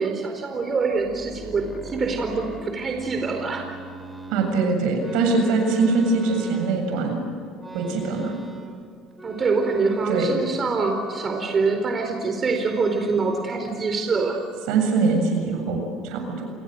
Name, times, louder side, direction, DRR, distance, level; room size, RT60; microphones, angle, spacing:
voice 1, 0.0-3.8 9.2-14.4, right 4 dB, 35° right, 4 dB, 4.3 m, -25 dB
sound 1, 0.9-4.5 5.0-7.1 7.6-8.8 9.1-10.4 10.8-12.0 12.5-13.4 13.7-14.8, right 2 dB, 15° right, 5.7 m, -40 dB
voice 2, 4.3-7.2 7.7-8.3 10.1-10.3 14.7-16.5, right 4 dB, 75° right, 4 dB, 7.4 m, -22 dB
29.5 x 21.5 x 8.0 m, 2.3 s
supercardioid pair, 80°, 0 cm